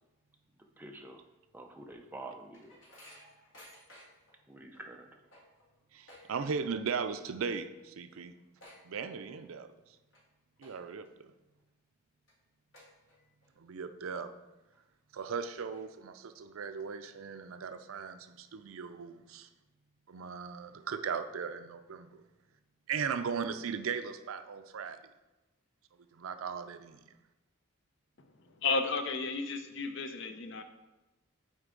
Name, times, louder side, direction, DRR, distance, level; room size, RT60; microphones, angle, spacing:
voice 1, 0.8-1.2 1.5-2.8 4.5-5.1, right 2 dB, 10° right, 2 dB, 0.5 m, -47 dB
sound 1, 2.1-4.3 4.7-4.8 5.1-6.8 7.1-7.5 7.8-7.9 8.1-9.5 9.9-10.2 10.6-11.1 11.6-11.7 12.3-12.4 12.7-13.5 13.9-14.0 14.7-14.8 15.2-16.1, left 1 dB, 85° left, 2.4 m, -57 dB
voice 2, 5.9-8.3 8.8-9.7 10.6-11.3 13.6-14.3 15.1-19.5 20.1-22.2 22.9-25.0 26.1-27.0, right 6 dB, 75° right, 10 dB, 0.4 m, -38 dB
voice 3, 28.2-30.6, left 4 dB, 60° left, 8 dB, 0.6 m, -33 dB
8.0 x 4.5 x 3.8 m, 1.1 s
head